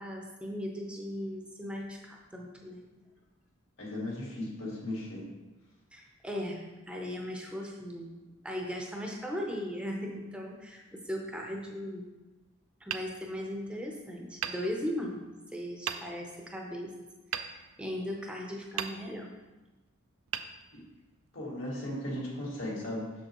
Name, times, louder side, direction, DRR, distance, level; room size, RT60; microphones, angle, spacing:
voice 1, 0.0-2.9 5.9-8.1 8.4-12.0 12.8-15.2 15.5-16.9 17.3-17.5 17.8-19.3, equal, 5° right, 0 dB, 0.6 m, -38 dB
voice 2, 3.8-5.3 20.7-20.9 21.3-23.1, left 1 dB, 70° left, -3 dB, 1.9 m, -36 dB
Hammer, 12.9-13.9 14.4-15.3 15.9-16.5 17.3-18.3 18.7-19.5 20.3-21.3, right 9 dB, 85° right, 0.4 m, -40 dB
6.8 x 6.7 x 3.0 m, 1.2 s
head